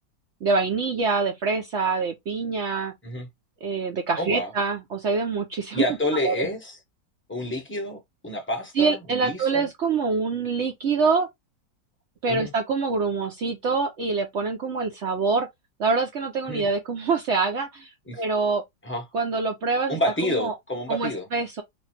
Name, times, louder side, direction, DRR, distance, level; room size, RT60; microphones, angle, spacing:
voice 1, 0.4-2.9 3.6-5.8 6.1-6.5 8.8-11.3 12.2-15.5 15.8-18.6 19.1-20.0 20.3-20.5 20.9-21.6, right 4 dB, 75° right, 0.6 m, -25 dB
voice 2, 4.2-4.5 5.7-6.8 7.3-9.6 12.3-12.5 16.5-16.7 18.1-18.2 18.8-19.0 19.9-21.3, left 1 dB, 15° left, 0.5 m, -28 dB
3.1 x 2.6 x 4.3 m
omnidirectional pair, 2.1 m